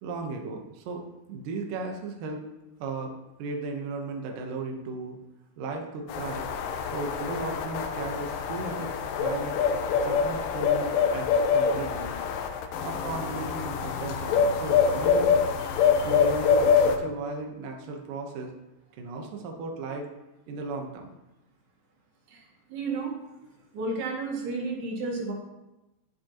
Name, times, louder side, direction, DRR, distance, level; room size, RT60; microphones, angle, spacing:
voice 1, 0.0-2.4 2.8-3.1 3.4-5.2 5.6-6.5 6.9-9.6 10.0-12.1 12.8-15.4 16.0-18.5 18.9-20.1 20.5-21.1, right 3 dB, 75° right, 2 dB, 2.0 m, -35 dB
sound 1, 6.1-17.0, left 6 dB, 85° left, 3.4 m, -25 dB
voice 2, 15.6-16.2 22.3-23.2 23.7-25.3, right 3 dB, 60° right, -3 dB, 3.9 m, -33 dB
12.5 x 10.5 x 3.0 m, 0.98 s
omnidirectional pair, 5.5 m